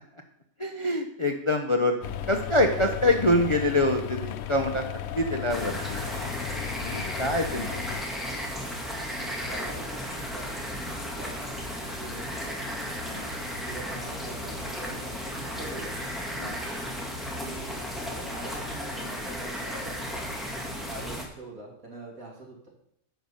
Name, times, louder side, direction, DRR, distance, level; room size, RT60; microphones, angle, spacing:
voice 1, 0.6-4.9 5.1-6.1 6.8-7.8 13.1-13.3 16.3-16.6, left 1 dB, 30° left, 4 dB, 0.6 m, -25 dB
sound 1, 2.0-8.0, left 10 dB, 85° left, 1.1 m, -35 dB
voice 2, 2.7-3.2 8.8-11.6 12.0-12.6 13.6-16.0 17.3-17.8 18.1-20.2 20.9-22.7, right 2 dB, 75° right, -1 dB, 3.1 m, -43 dB
sound 2, 5.5-21.2, equal, ahead, 1.8 m, -34 dB
10.5 x 5.2 x 7.1 m, 0.75 s
omnidirectional pair, 1.5 m